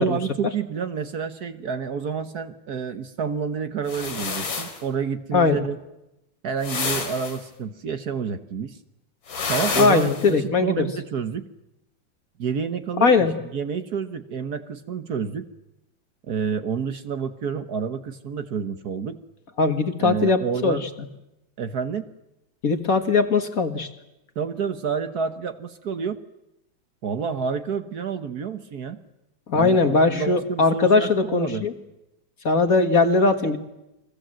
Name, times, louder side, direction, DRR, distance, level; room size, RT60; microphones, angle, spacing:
voice 1, 0.0-5.8 6.4-8.8 9.5-11.5 12.4-15.5 16.3-19.2 20.0-20.8 21.6-22.1 24.3-26.2 27.0-29.0 29.6-31.6, right 6 dB, 55° right, 9 dB, 1.5 m, -29 dB
sound 1, 3.9-4.8 6.6-7.4 9.3-10.3, left 5 dB, 90° left, 3.4 m, -29 dB
voice 2, 9.8-10.9 13.0-13.3 19.6-20.8 22.6-23.9 29.5-31.7 32.4-33.6, left 4 dB, 45° left, 7 dB, 1.9 m, -20 dB
30.0 x 22.5 x 7.6 m, 0.91 s
omnidirectional pair, 2.1 m